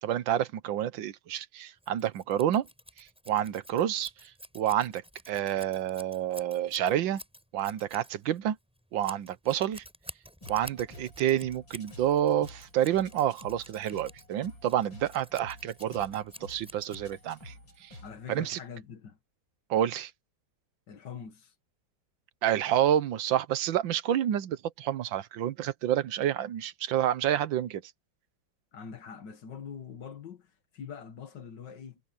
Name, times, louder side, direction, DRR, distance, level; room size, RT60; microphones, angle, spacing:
voice 1, 0.0-2.7 3.0-7.2 7.5-8.6 8.9-9.8 10.5-17.5 17.8-18.0 18.3-18.6 19.7-20.1 22.4-27.8, right 11 dB, 80° right, 1.6 m, -29 dB
Scissors, 1.8-17.4, equal, 5° right, 7.4 m, -50 dB
sound 1, 10.4-18.4, left 1 dB, 85° left, 8.4 m, -50 dB
voice 2, 18.0-19.2 20.9-21.5 28.7-32.0, left 7 dB, 65° left, 2.1 m, -44 dB
omnidirectional pair, 2.1 m